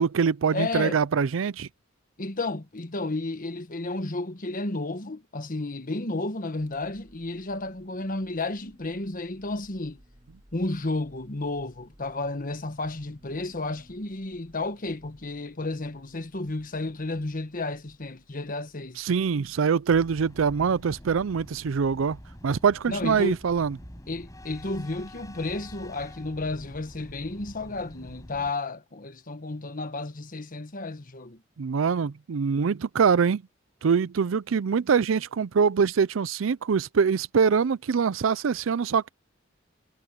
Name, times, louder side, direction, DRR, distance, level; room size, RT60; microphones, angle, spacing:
voice 1, 0.0-1.7 19.0-22.2 22.4-23.8 31.6-33.4 33.8-39.1, right 6 dB, 80° right, 0.5 m, -24 dB
voice 2, 0.5-1.0 2.2-10.0 10.5-19.1 22.9-23.4 24.1-31.4, left 2 dB, 45° left, 1.4 m, -32 dB
sound 1, 6.6-24.9, equal, 30° right, 4.2 m, -60 dB
sound 2, 19.9-28.5, equal, 20° left, 7.8 m, -46 dB
head